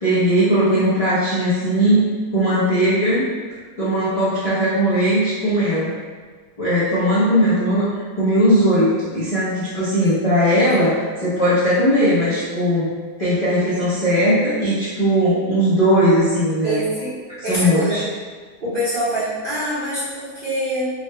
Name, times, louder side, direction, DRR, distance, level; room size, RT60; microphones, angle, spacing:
voice 1, 0.0-2.0 2.3-3.3 3.8-5.9 6.6-12.9 13.2-16.8 17.4-18.0, equal, 50° left, -11 dB, 0.4 m, -18 dB
voice 2, 10.0-10.8 16.6-17.1 17.4-18.0 18.6-20.9, right 1 dB, 45° right, -11 dB, 0.7 m, -25 dB
3.7 x 2.2 x 3.2 m, 1.5 s
omnidirectional pair, 1.7 m